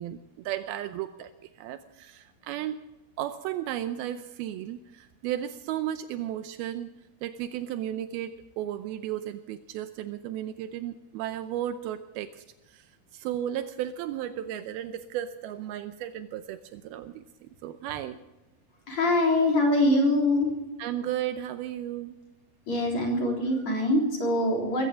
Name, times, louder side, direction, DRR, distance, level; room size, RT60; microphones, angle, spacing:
voice 1, 0.0-2.8 3.2-6.9 7.2-18.2 20.8-22.2, right 11 dB, 85° right, 10 dB, 2.5 m, -34 dB
voice 2, 18.9-20.5 22.7-24.9, left 1 dB, 45° left, -1 dB, 4.8 m, -24 dB
20.5 x 16.5 x 3.7 m, 1.0 s
omnidirectional pair, 4.4 m